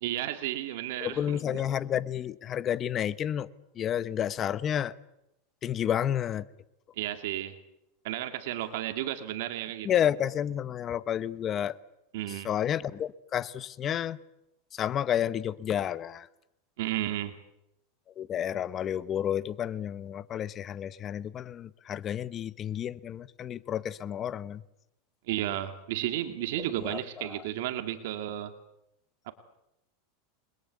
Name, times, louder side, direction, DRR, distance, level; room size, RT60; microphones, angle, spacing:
voice 1, 0.0-1.6 7.0-7.6 8.0-9.9 12.1-12.5 16.8-17.4 25.3-28.5 29.3-29.4, right 13 dB, 70° right, 2.2 m, -33 dB
voice 2, 1.0-3.5 3.8-4.9 5.6-6.4 9.8-11.8 12.4-14.2 14.7-16.3 18.2-24.6 26.8-27.3, left 10 dB, 30° left, 1.0 m, -30 dB
29.0 x 22.0 x 8.4 m
supercardioid pair, 145°, 0 cm